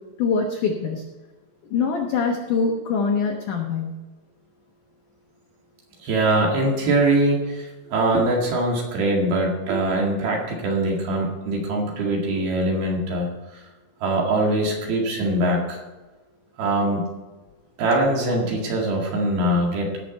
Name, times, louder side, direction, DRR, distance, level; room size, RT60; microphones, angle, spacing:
voice 1, 0.2-1.0 1.7-3.9, left 5 dB, 90° left, 1 dB, 1.8 m, -23 dB
voice 2, 6.0-13.3 14.0-15.8 16.6-17.0 17.8-19.9, right 1 dB, 60° right, -1 dB, 3.6 m, -22 dB
18.0 x 7.1 x 4.3 m, 1.2 s
omnidirectional pair, 5.5 m